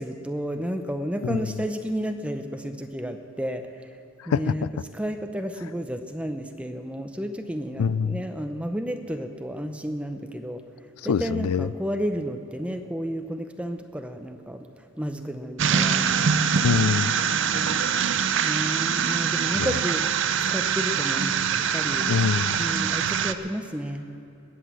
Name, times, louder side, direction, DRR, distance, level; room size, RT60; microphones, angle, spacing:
voice 1, 0.0-3.9 4.3-4.7 4.9-10.6 11.0-14.7 15.0-16.1 17.4-17.9 18.4-20.0 20.5-22.1 22.6-24.1, equal, 5° right, 6 dB, 0.6 m, -32 dB
voice 2, 1.2-1.6 4.2-4.7 7.8-8.2 11.1-11.7 16.5-17.1 19.6-19.7 22.1-22.7, left 6 dB, 80° left, 19 dB, 0.4 m, -25 dB
sound 1, 15.6-23.3, right 7 dB, 55° right, 0.5 m, -24 dB
20.5 x 8.2 x 7.5 m, 2.7 s
head